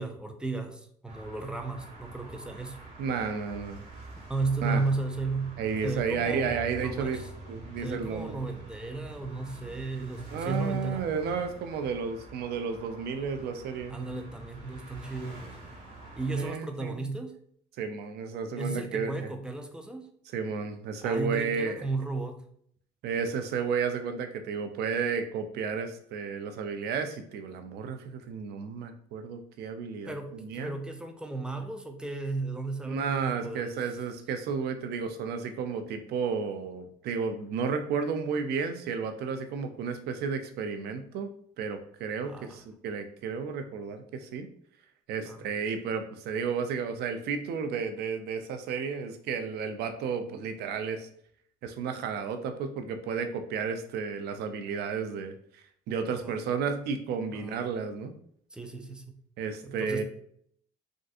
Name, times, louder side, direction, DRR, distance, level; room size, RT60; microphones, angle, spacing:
voice 1, 0.0-2.8 4.3-5.5 5.8-7.3 7.8-11.0 13.9-15.6 16.2-17.3 18.6-20.1 21.0-22.4 30.1-33.8 42.2-42.6 45.3-45.5 56.1-56.4 57.3-57.7 58.5-59.1 59.6-60.0, right 3 dB, 5° right, 5 dB, 0.4 m, -34 dB
sound 1, 1.1-16.5, right 2 dB, 50° right, 1.4 m, -46 dB
voice 2, 3.0-3.8 4.6-4.8 5.6-7.2 7.5-8.4 10.3-14.0 16.4-17.1 17.8-19.3 20.3-21.9 23.0-30.7 32.9-41.3 41.6-44.5 45.1-51.1 51.6-55.3 55.9-58.1 59.4-60.0, right 5 dB, 70° right, 7 dB, 0.5 m, -32 dB
3.6 x 2.5 x 2.4 m, 0.64 s
cardioid pair, 110°, 17 cm